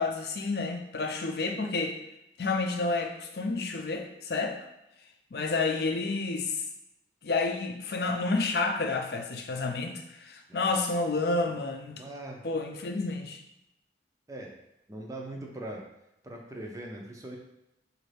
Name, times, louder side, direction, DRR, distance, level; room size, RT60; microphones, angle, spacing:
voice 1, 0.0-2.0 2.4-4.6 5.3-6.6 7.2-12.0 12.4-13.4, left 3 dB, 60° left, 4 dB, 0.5 m, -30 dB
voice 2, 11.9-12.4 14.3-14.6 14.9-15.9 16.2-17.4, right 1 dB, 20° right, 0 dB, 0.6 m, -41 dB
5.2 x 2.6 x 3.3 m, 0.85 s
head